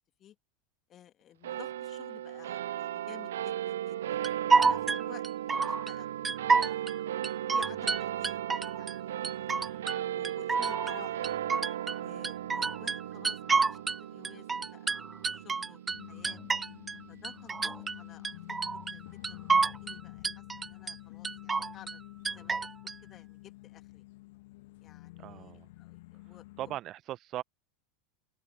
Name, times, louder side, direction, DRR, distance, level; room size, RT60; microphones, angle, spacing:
voice 1, 0.9-4.3 4.6-6.1 6.6-7.0 7.5-8.4 8.7-9.5 10.1-11.3 11.9-16.4 17.1-22.0 22.3-24.0 24.8-26.7, left 11 dB, 35° left, 3.0 m, -54 dB
sound 1, 1.4-18.2, right 11 dB, 70° right, 0.7 m, -37 dB
sound 2, 4.2-5.9 6.2-6.9 7.2-9.0 9.2-10.0 10.2-14.0 14.2-17.0 17.2-18.0 18.2-19.0 19.2-20.0 20.2-20.9 21.2-22.0 22.2-22.9, right 4 dB, 15° right, 0.5 m, -29 dB
voice 2, 9.4-10.2 25.2-25.7 26.6-27.4, right 14 dB, 40° right, 1.1 m, -40 dB
sound 3, 15.9-26.8, left 20 dB, 60° left, 1.5 m, -49 dB
open air
figure-of-eight pair, 80°, 0 cm